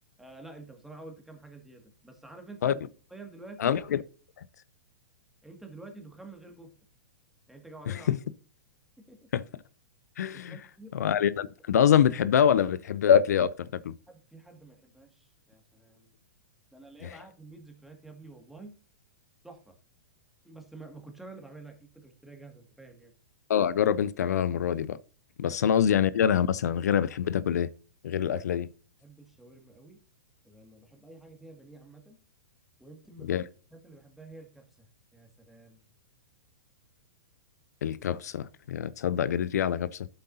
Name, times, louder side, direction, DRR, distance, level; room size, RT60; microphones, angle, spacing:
voice 1, 0.2-2.8 3.1-3.8 5.4-6.7 7.5-8.1 9.0-9.3 10.3-10.9 14.1-16.1 16.7-18.7 19.4-19.7 20.4-23.1 29.0-30.0 30.4-32.2 32.8-33.4 33.7-34.9 35.1-35.9, right 2 dB, 5° right, 2.0 m, -49 dB
voice 2, 3.6-4.0 7.9-8.2 9.3-9.4 10.2-10.6 10.9-13.5 13.8-13.9 17.0-17.2 23.5-25.0 25.4-27.7 28.0-28.7 33.2-33.4 37.8-40.1, left 9 dB, 75° left, 0.5 m, -25 dB
11.5 x 7.9 x 2.7 m
hypercardioid pair, 130°, 9 cm